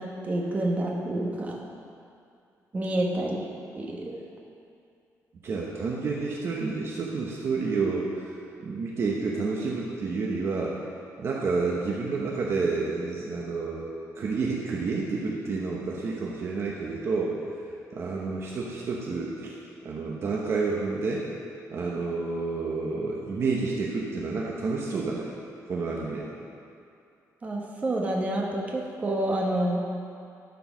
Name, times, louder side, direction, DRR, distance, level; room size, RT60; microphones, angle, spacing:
voice 1, 0.0-1.6 2.7-3.4 3.7-4.2 27.4-29.8, right 1 dB, 25° right, -2 dB, 1.1 m, -28 dB
voice 2, 5.4-8.3 8.6-10.8 11.2-17.4 17.9-19.6 19.8-21.3 21.7-25.3 25.7-26.3, right 4 dB, 45° right, -3 dB, 0.9 m, -29 dB
13.0 x 4.7 x 6.0 m, 2.5 s
cardioid pair, 175°, 6 cm